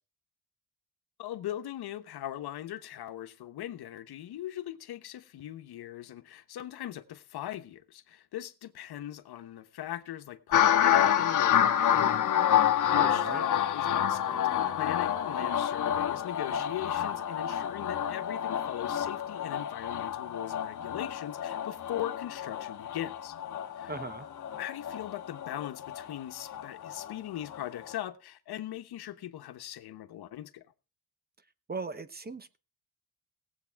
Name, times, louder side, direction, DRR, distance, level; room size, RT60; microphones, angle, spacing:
voice 1, 1.2-23.4 23.8-23.9 24.6-30.7, left 12 dB, 75° left, 1.1 m, -40 dB
sound 1, 10.5-27.1 27.5-27.9, left 10 dB, 50° left, 1.2 m, -28 dB
voice 2, 12.9-13.4 23.9-24.3 31.7-32.6, right 3 dB, 25° right, 0.9 m, -38 dB
17.5 x 8.3 x 4.6 m
cardioid pair, 120°, 39 cm